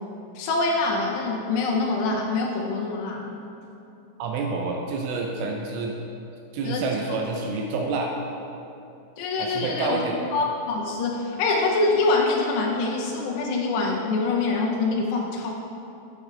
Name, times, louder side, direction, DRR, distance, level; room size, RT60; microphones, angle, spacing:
voice 1, 0.4-3.3 6.6-7.2 9.2-10.0 10.3-15.5, left 3 dB, 80° left, -1 dB, 2.5 m, -25 dB
voice 2, 4.2-6.0 6.5-8.1 9.4-10.2, right 4 dB, 80° right, 1 dB, 3.0 m, -28 dB
11.5 x 7.1 x 3.3 m, 2.9 s
omnidirectional pair, 5.6 m